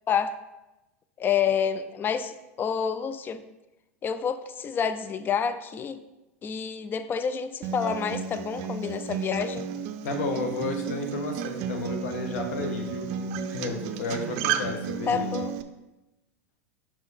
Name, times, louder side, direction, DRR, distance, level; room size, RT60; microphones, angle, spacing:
voice 1, 0.1-0.4 1.2-3.4 4.0-6.0 6.4-9.7 15.1-15.5, left 7 dB, 25° left, 12 dB, 0.4 m, -28 dB
Acoustic guitar, 7.6-15.6, right 6 dB, 55° right, 0.5 m, -32 dB
voice 2, 10.0-13.1 13.5-15.3, left 3 dB, 75° left, 4 dB, 1.2 m, -32 dB
6.0 x 4.8 x 4.2 m, 1.0 s
hypercardioid pair, 105°, 8 cm